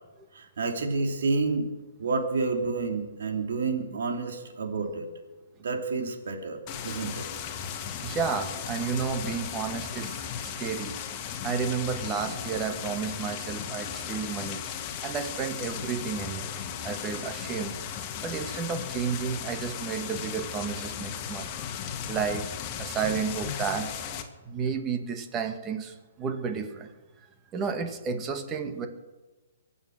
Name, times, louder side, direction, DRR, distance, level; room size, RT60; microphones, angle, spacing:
voice 1, 0.3-1.7 2.0-5.1 5.6-7.2, right 3 dB, 70° right, 3 dB, 3.1 m, -29 dB
sound 1, 6.7-24.2, left 8 dB, 30° left, 1.9 m, -36 dB
voice 2, 8.0-11.0 11.4-14.6 15.0-16.6 16.8-17.7 18.2-21.5 22.1-22.5 22.8-23.9 24.5-26.9 27.5-28.9, right 6 dB, 20° right, 6 dB, 2.0 m, -32 dB
23.5 x 8.8 x 6.5 m, 1.2 s
hypercardioid pair, 140°, 0 cm